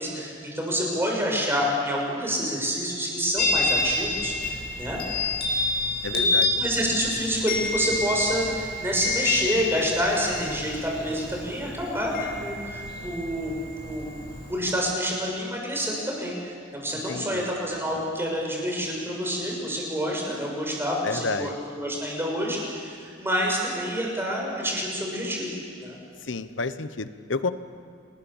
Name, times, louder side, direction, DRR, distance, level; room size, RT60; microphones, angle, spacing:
voice 1, 0.0-5.0 6.1-13.5 13.8-14.1 14.5-25.5 25.8-26.0, equal, 15° right, -1 dB, 6.6 m, -28 dB
Chime, 3.4-14.6, left 3 dB, 55° left, 4.8 m, -29 dB
voice 2, 6.0-6.5 17.1-17.5 21.0-21.5 26.2-27.5, left 3 dB, 70° left, 12 dB, 1.1 m, -30 dB
29.5 x 20.0 x 7.3 m, 2.4 s
head